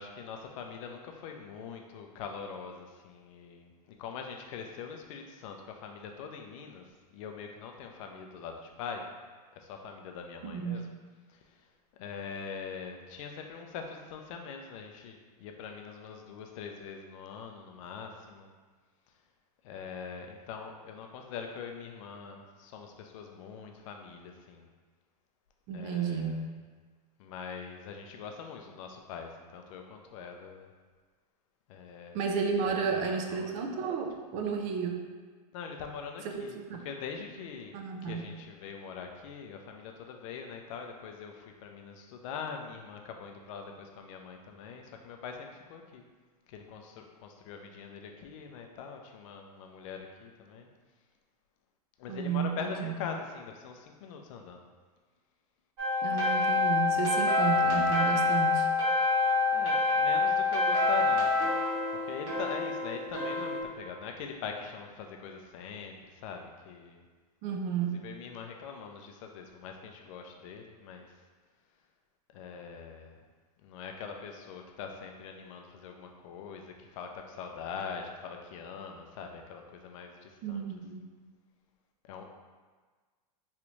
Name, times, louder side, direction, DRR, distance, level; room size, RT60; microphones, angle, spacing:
voice 1, 0.0-9.0 9.5-10.9 11.3-11.7 12.0-18.5 19.6-24.7 25.7-26.5 27.2-30.7 31.7-32.2 32.7-33.5 35.5-37.7 38.0-46.0 46.5-50.7 52.0-54.6 59.5-61.6 61.9-67.0 67.8-71.1 72.3-73.2 73.6-80.6 82.0-82.3, left 6 dB, 50° left, 3 dB, 0.5 m, -43 dB
voice 2, 10.4-10.8 25.7-26.5 32.1-35.0 36.3-36.8 37.7-38.3 52.1-53.0 56.0-58.7 67.4-68.0 80.4-81.1, right 6 dB, 35° right, 3 dB, 0.4 m, -32 dB
sound 1, 55.8-63.6, left 3 dB, 65° right, 1.5 m, -27 dB
3.2 x 2.4 x 3.0 m, 1.4 s
hypercardioid pair, 135°, 21 cm